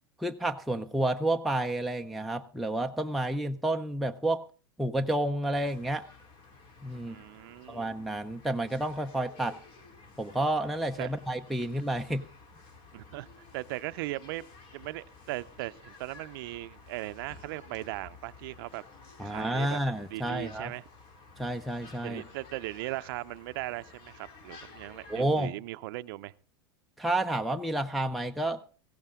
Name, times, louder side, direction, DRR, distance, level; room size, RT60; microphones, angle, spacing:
voice 1, 0.2-4.4 4.8-6.1 6.8-7.2 7.7-9.6 10.2-12.3 19.2-20.7 21.4-22.2 25.1-25.6 27.0-28.7, right 1 dB, ahead, 3 dB, 0.6 m, -30 dB
sound 1, 5.5-25.2, left 3 dB, 45° left, 3.6 m, -53 dB
voice 2, 6.9-7.9 11.0-11.1 12.9-13.3 13.5-14.5 14.7-18.8 19.2-19.8 20.1-20.8 22.0-26.3, right 18 dB, 65° right, 13 dB, 0.6 m, -38 dB
16.0 x 15.5 x 3.7 m, 0.38 s
hypercardioid pair, 115°, 13 cm